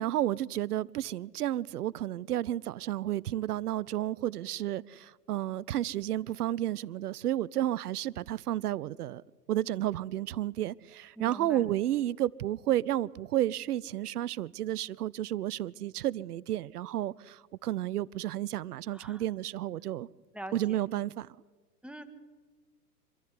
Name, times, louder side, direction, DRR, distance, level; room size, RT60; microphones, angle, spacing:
voice 1, 0.0-9.2 9.5-20.1 20.5-21.3, right 13 dB, 70° right, 0.7 m, -32 dB
voice 2, 11.2-11.6 18.9-19.2 20.3-20.8 21.8-22.0, right 1 dB, ahead, 1.7 m, -43 dB
27.0 x 13.0 x 9.7 m
hypercardioid pair, 105°, 47 cm